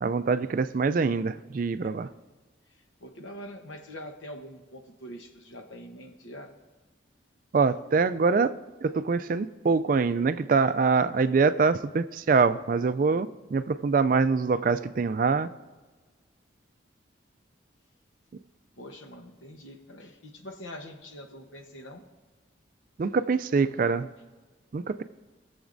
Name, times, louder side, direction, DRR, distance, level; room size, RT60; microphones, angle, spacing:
voice 1, 0.0-2.1 7.5-8.5 8.8-15.5 23.0-24.1 24.7-25.0, right 4 dB, 45° right, 13 dB, 0.3 m, -24 dB
voice 2, 3.0-6.5 18.8-22.0, equal, 90° left, 5 dB, 1.1 m, -44 dB
19.0 x 7.1 x 2.6 m, 1.3 s
head